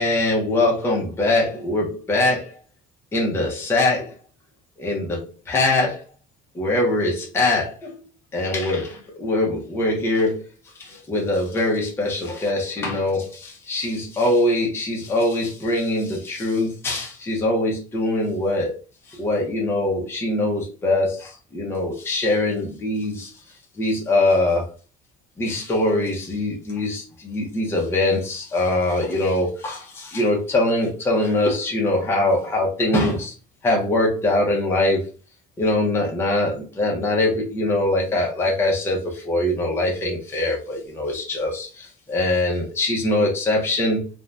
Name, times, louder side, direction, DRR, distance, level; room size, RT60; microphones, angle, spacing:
voice 1, 0.0-2.5 3.1-4.1 4.8-6.0 6.5-8.0 8.3-10.4 10.8-18.8 19.1-23.3 23.8-24.7 25.4-33.3 33.6-35.1 35.6-44.1, left 2 dB, 15° left, 0.6 m, -22 dB
2.5 x 2.1 x 3.3 m
cardioid pair, 180°, 18 cm